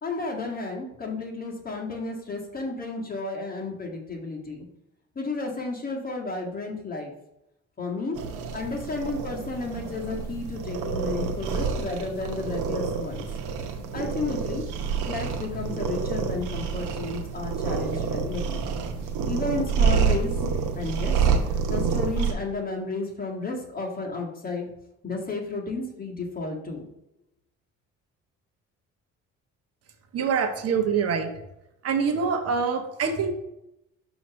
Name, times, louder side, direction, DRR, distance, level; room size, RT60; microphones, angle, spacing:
voice 1, 0.0-4.6 5.2-7.1 7.8-8.2 8.5-13.2 13.9-14.6 15.1-18.7 19.3-20.3 20.7-21.1 21.7-24.7 25.0-26.9, left 3 dB, 30° left, -1 dB, 1.8 m, -32 dB
sound 1, 8.1-22.3, right 6 dB, 85° right, 0.9 m, -28 dB
voice 2, 30.1-31.3 31.8-33.3, right 6 dB, 55° right, 6 dB, 1.0 m, -25 dB
6.2 x 3.1 x 5.7 m, 0.86 s
supercardioid pair, 85°, 30 cm